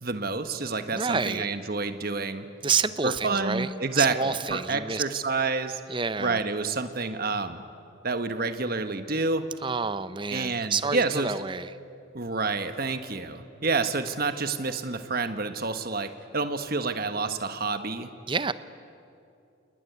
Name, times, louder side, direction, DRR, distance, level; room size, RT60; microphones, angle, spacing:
voice 1, 0.0-2.5 3.0-5.8 6.2-7.6 8.0-9.5 10.3-11.3 12.1-18.1, right 3 dB, 45° right, 9 dB, 1.3 m, -28 dB
voice 2, 0.9-1.4 2.6-3.7 4.0-5.0 5.9-6.4 9.6-11.7 18.3-18.5, right 5 dB, 25° right, 14 dB, 0.6 m, -28 dB
28.0 x 19.5 x 9.6 m, 2.6 s
head